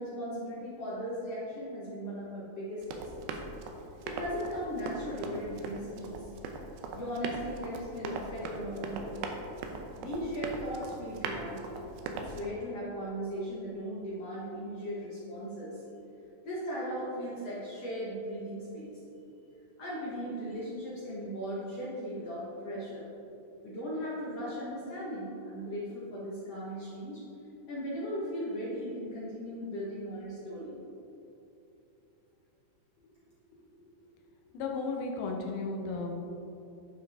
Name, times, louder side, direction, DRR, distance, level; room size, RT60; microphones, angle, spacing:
voice 1, 0.0-3.3 4.0-6.3 6.9-9.2 10.0-11.8 12.1-15.8 16.4-19.0 19.8-23.0 23.6-27.2 27.7-30.8, equal, 60° left, -7 dB, 1.7 m, -37 dB
Run, 2.8-12.5, right 3 dB, 85° right, 2.5 m, -40 dB
voice 2, 34.5-36.1, left 3 dB, 90° left, 1 dB, 2.9 m, -34 dB
12.0 x 5.6 x 3.5 m, 2.9 s
omnidirectional pair, 4.3 m